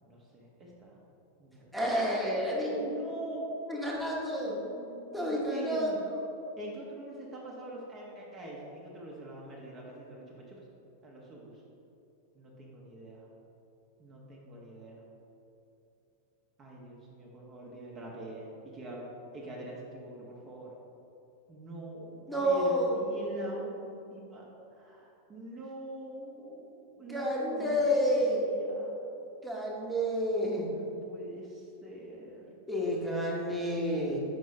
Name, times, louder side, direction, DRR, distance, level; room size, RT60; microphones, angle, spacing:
voice 1, 0.0-1.0 1.4-1.8 2.7-3.5 3.9-4.0 4.4-6.0 6.6-10.6 11.0-11.6 12.3-13.3 14.0-15.1 16.6-19.0 19.3-20.7 21.5-24.5 24.7-27.8 28.1-29.0 30.7-32.5, right 1 dB, 25° right, -3 dB, 0.9 m, -44 dB
voice 2, 1.7-3.0 3.7-4.6 5.1-6.0 22.3-23.0 23.4-23.5 27.1-28.5 29.4-30.7 32.7-34.2, equal, ahead, -5 dB, 1.1 m, -29 dB
5.2 x 5.0 x 3.9 m, 2.9 s
figure-of-eight pair, 90°, 0 cm